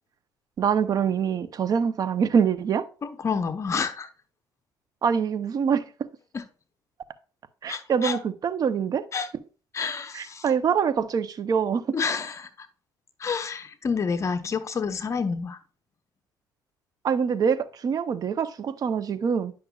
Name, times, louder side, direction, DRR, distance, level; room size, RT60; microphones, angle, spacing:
voice 1, 0.6-2.9 5.0-5.9 7.6-9.1 10.1-12.0 17.0-19.5, right 7 dB, 50° right, 0.7 m, -24 dB
voice 2, 3.0-4.1 6.3-6.4 7.7-8.2 9.1-9.3 9.7-10.4 11.9-12.7 13.2-15.6, left 5 dB, 35° left, 0.8 m, -29 dB
9.9 x 6.0 x 2.4 m
supercardioid pair, 85°, 8 cm